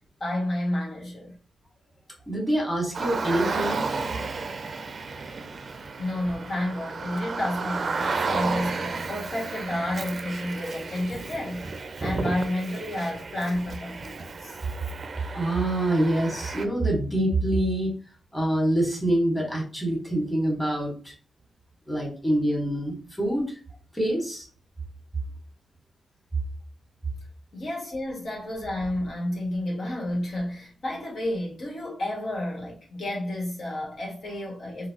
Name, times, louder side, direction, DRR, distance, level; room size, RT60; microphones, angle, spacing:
voice 1, 0.2-1.3 6.0-11.7 12.0-14.6 27.5-34.9, left 1 dB, 70° left, 1.5 m, -30 dB
voice 2, 2.3-3.8 15.3-17.9 18.3-21.1 21.9-23.6 23.9-24.5, right 1 dB, 10° left, 1.6 m, -25 dB
Car, 2.9-16.7, right 4 dB, 55° right, 0.4 m, -33 dB
3.8 x 2.3 x 2.8 m
cardioid pair, 70°, 0 cm